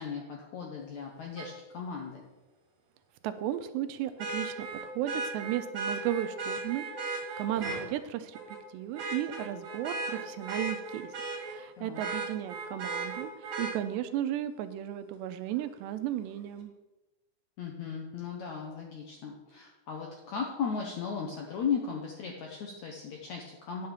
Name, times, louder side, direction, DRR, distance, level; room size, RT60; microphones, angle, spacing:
voice 1, 0.0-2.3 11.8-12.0 17.6-23.9, left 6 dB, 85° left, 0 dB, 1.6 m, -36 dB
Vehicle horn car horn honking, 1.4-1.5 4.2-7.8 8.3-8.6 8.9-11.6 11.9-13.7 15.6-15.7, right 3 dB, 45° right, 2.4 m, -36 dB
voice 2, 3.2-11.1 11.5-13.3 13.6-16.7, right 12 dB, 90° right, 10 dB, 2.8 m, -35 dB
10.5 x 6.6 x 7.0 m, 1.1 s
omnidirectional pair, 4.9 m